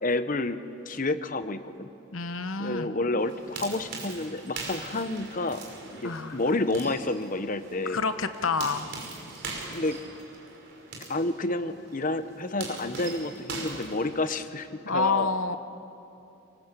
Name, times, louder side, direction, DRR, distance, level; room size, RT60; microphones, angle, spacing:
voice 1, 0.0-0.6 0.9-1.9 2.6-8.0 9.7-10.0 11.1-15.6, left 2 dB, 40° left, 11 dB, 0.9 m, -30 dB
voice 2, 2.1-2.9 6.0-6.4 7.9-8.9 14.8-15.6, left 4 dB, 70° left, 10 dB, 1.1 m, -28 dB
sound 1, 3.2-14.7, right 3 dB, 55° right, 5.4 m, -41 dB
28.0 x 19.5 x 8.3 m, 2.8 s
head